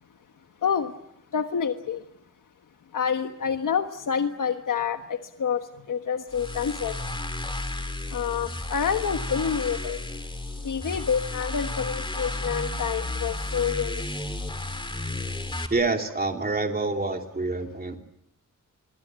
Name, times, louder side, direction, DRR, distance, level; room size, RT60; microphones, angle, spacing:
voice 1, 1.3-2.0 2.9-5.6 5.9-7.1 8.1-10.0 10.6-14.0, left 7 dB, 85° left, 6 dB, 1.4 m, -28 dB
sound 1, 6.3-15.7, left 2 dB, 15° left, 2.7 m, -33 dB
voice 2, 15.7-18.0, right 3 dB, 30° right, 3 dB, 3.1 m, -27 dB
24.5 x 24.5 x 8.3 m, 0.78 s
wide cardioid pair, 125°, 31 cm